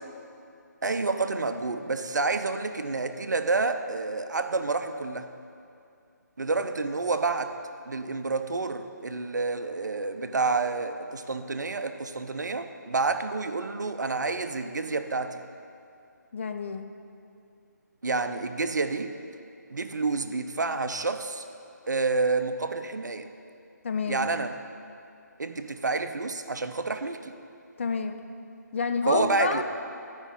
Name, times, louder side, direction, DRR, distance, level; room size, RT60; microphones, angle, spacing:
voice 1, 0.8-5.3 6.4-7.6 7.9-15.4 18.0-19.1 19.7-21.4 21.9-23.3 24.1-24.5 25.4-27.3 29.1-29.6, right 3 dB, 70° right, 9 dB, 0.6 m, -29 dB
voice 2, 16.3-16.9 23.8-24.3 27.8-28.2 28.7-29.6, left 5 dB, 40° left, 7 dB, 0.5 m, -29 dB
12.5 x 5.3 x 5.2 m, 2.5 s
figure-of-eight pair, 150°, 10 cm